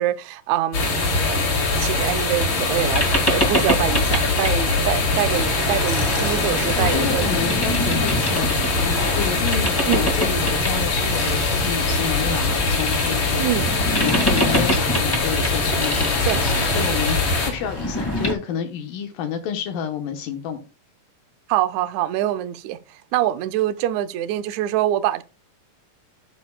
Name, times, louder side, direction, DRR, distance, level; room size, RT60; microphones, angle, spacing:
voice 1, 0.0-1.4 1.8-7.5 9.9-10.1 13.4-13.7 16.3-16.4 21.5-22.8 23.1-25.2, right 12 dB, 75° right, 1.7 m, -25 dB
sound 1, 0.7-17.5, left 3 dB, 55° left, 3.5 m, -22 dB
Boat Water vehicle, 2.8-18.3, equal, 10° left, 1.3 m, -27 dB
voice 2, 6.8-13.5 14.0-20.6, left 8 dB, 85° left, 2.8 m, -29 dB
11.5 x 7.1 x 2.2 m
omnidirectional pair, 3.9 m